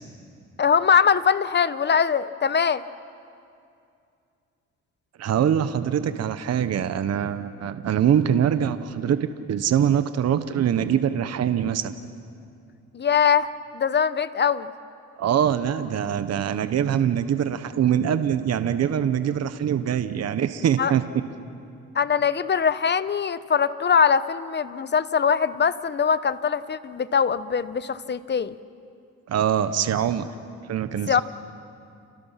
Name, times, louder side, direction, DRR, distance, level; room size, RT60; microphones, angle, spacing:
voice 1, 0.6-2.8 12.9-13.5 13.7-14.7 20.8-20.9 21.9-28.5 31.1-31.2, left 6 dB, 35° left, 14 dB, 1.0 m, -22 dB
voice 2, 5.2-11.9 15.2-21.0 29.3-30.3 30.7-31.2, right 9 dB, 55° right, 11 dB, 1.0 m, -23 dB
30.0 x 29.5 x 5.8 m, 2.5 s
cardioid pair, 90°, 30 cm